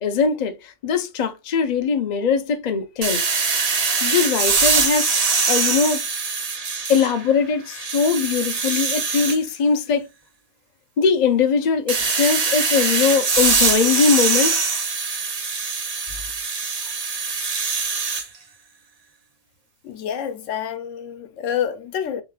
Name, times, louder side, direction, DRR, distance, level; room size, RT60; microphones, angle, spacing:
voice 1, 0.0-3.2 4.0-6.0 6.9-10.1 11.0-14.6, left 5 dB, 40° left, 0.7 m, -21 dB
sound 1, 3.0-7.3 7.7-9.4 11.9-18.3, right 4 dB, 40° right, 0.7 m, -22 dB
voice 2, 19.8-22.2, left 9 dB, 85° left, 1.1 m, -28 dB
7.1 x 3.1 x 2.3 m
omnidirectional pair, 1.3 m